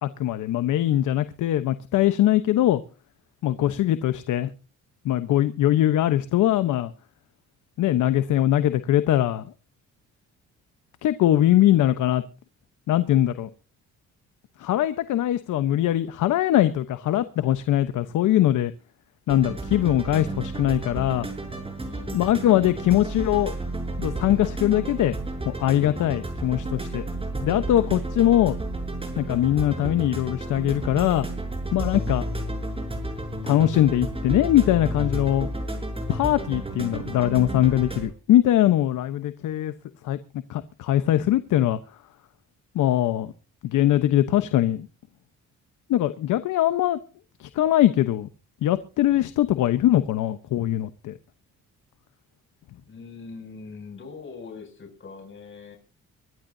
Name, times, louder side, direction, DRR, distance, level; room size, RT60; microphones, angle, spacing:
voice 1, 0.0-2.8 3.4-4.5 5.0-6.9 7.8-9.4 11.0-12.2 12.9-13.5 14.6-18.7 19.3-21.3 22.1-23.5 24.0-25.2 25.4-27.1 27.4-28.6 29.2-31.3 31.7-32.2 33.4-35.5 36.1-39.7 40.0-40.2 40.5-41.8 42.7-43.3 43.6-44.9 45.9-47.0 47.4-48.3 48.6-51.1, left 13 dB, 80° left, 1.1 m, -22 dB
sound 1, 19.3-38.1, right 1 dB, 20° right, 6.8 m, -32 dB
voice 2, 21.8-22.3 52.9-55.8, left 4 dB, 40° left, 6.9 m, -42 dB
24.5 x 12.0 x 2.8 m
cardioid pair, 90°, 30 cm